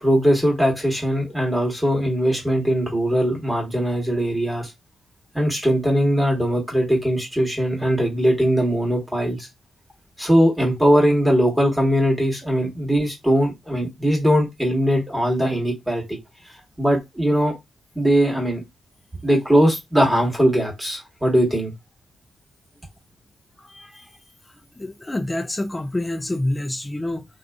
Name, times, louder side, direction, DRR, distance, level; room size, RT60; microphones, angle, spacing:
voice 1, 0.0-4.7 5.3-9.5 10.2-16.0 16.8-17.5 17.9-18.6 19.2-21.7, equal, 5° right, 1.3 m, -20 dB
voice 2, 23.6-24.1 24.8-27.3, left 1 dB, 20° left, 0.4 m, -27 dB
2.4 x 2.3 x 2.3 m
hypercardioid pair, 45°, 0 cm